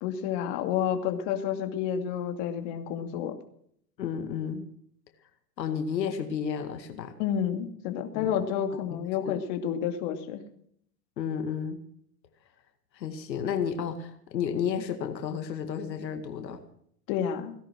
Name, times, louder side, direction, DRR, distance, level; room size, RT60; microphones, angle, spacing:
voice 1, 0.0-3.3 7.2-10.4 17.1-17.5, left 9 dB, 50° left, 6 dB, 2.7 m, -30 dB
voice 2, 4.0-4.6 5.6-7.2 8.1-8.3 8.9-9.0 9.3-9.4 11.2-11.8 12.9-16.6, left 7 dB, 80° left, 6 dB, 2.3 m, -32 dB
18.0 x 11.5 x 6.3 m, 0.67 s
hypercardioid pair, 120°, 49 cm